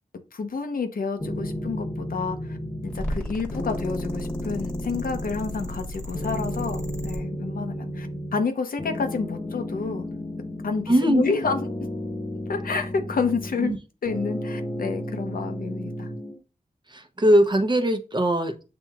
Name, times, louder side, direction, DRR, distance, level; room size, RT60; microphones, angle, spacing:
voice 1, 0.3-2.6 2.8-10.0 10.6-11.9 12.5-13.7 14.0-16.1, left 4 dB, 75° left, 7 dB, 0.7 m, -29 dB
sound 1, 1.2-3.2 3.5-5.8 6.1-8.5 8.8-11.1 11.4-13.8 14.1-16.4, left 1 dB, 35° left, 1.0 m, -33 dB
sound 2, 2.9-7.2, left 1 dB, 5° left, 1.3 m, -34 dB
voice 2, 10.9-11.2 13.6-13.8 16.9-18.5, right 1 dB, 30° right, 5 dB, 0.8 m, -20 dB
6.9 x 3.0 x 2.3 m, 0.32 s
wide cardioid pair, 65°, 15 cm